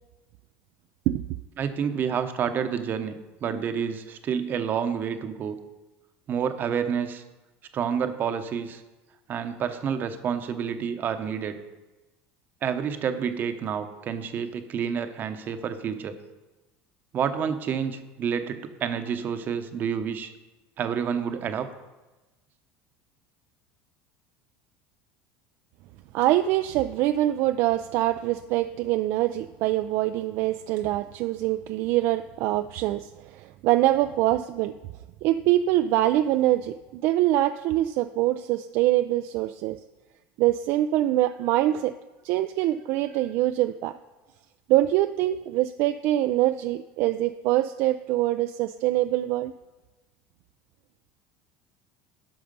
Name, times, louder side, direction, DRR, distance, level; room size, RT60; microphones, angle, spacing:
voice 1, 1.6-5.6 6.3-7.2 7.7-8.8 9.3-11.6 12.6-16.2 17.1-20.3 20.8-21.7, right 7 dB, 40° right, 9 dB, 0.8 m, -29 dB
voice 2, 26.1-34.8 35.2-39.8 40.4-41.9 42.2-44.0 44.7-49.5, right 14 dB, 60° right, 9 dB, 0.3 m, -24 dB
11.5 x 5.8 x 5.4 m, 1.1 s
supercardioid pair, 120°, 5 cm